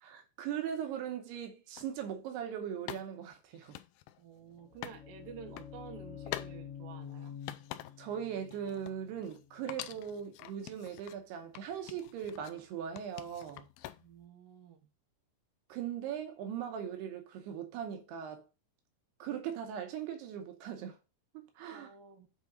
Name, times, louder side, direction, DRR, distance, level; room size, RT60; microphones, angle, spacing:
voice 1, 0.0-3.8 8.0-13.7 15.7-18.4 19.2-21.0 21.3-21.9, right 9 dB, 85° right, 2.9 m, -39 dB
sound 1, 1.8-1.9 2.9-5.0 5.3-5.7 6.3-6.5 6.9-8.2 8.5-9.4 9.7-11.2 11.6-12.6 13.0-14.3, left 14 dB, 90° left, 2.0 m, -46 dB
voice 2, 4.2-7.4 14.0-14.8 21.7-22.3, right 7 dB, 65° right, 2.6 m, -51 dB
sound 2, 4.4-10.3, left 8 dB, 50° left, 2.2 m, -48 dB
8.1 x 3.9 x 4.2 m
omnidirectional pair, 4.7 m